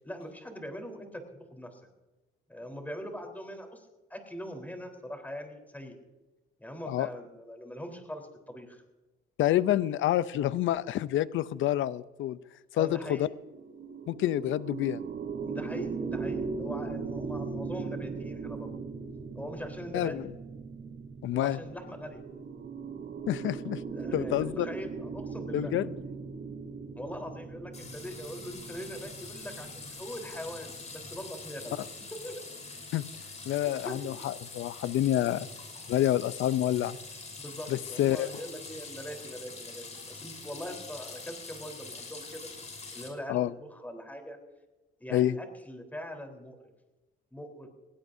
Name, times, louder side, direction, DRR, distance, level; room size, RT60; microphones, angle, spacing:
voice 1, 0.0-1.8 2.5-5.9 6.6-8.8 12.7-13.3 15.5-18.7 19.3-20.3 21.3-22.2 23.9-25.7 27.0-31.8 32.1-32.4 33.6-34.0 37.4-42.5 42.9-44.4 45.0-46.6 47.3-47.7, equal, 10° left, 4 dB, 3.9 m, -42 dB
voice 2, 9.4-12.4 12.7-13.3 14.1-15.0 19.9-20.3 21.2-21.6 23.3-23.8 24.1-24.7 25.5-25.9 32.9-33.1 33.5-35.5 35.9-37.0 37.7-38.3 43.3-43.5 45.1-45.4, left 13 dB, 80° left, 16 dB, 0.6 m, -28 dB
sound 1, 13.3-30.7, right 5 dB, 70° right, 3.8 m, -39 dB
sound 2, 27.7-43.1, left 3 dB, 35° left, 5.4 m, -44 dB
20.0 x 17.0 x 2.7 m, 1.1 s
cardioid pair, 90°, 20 cm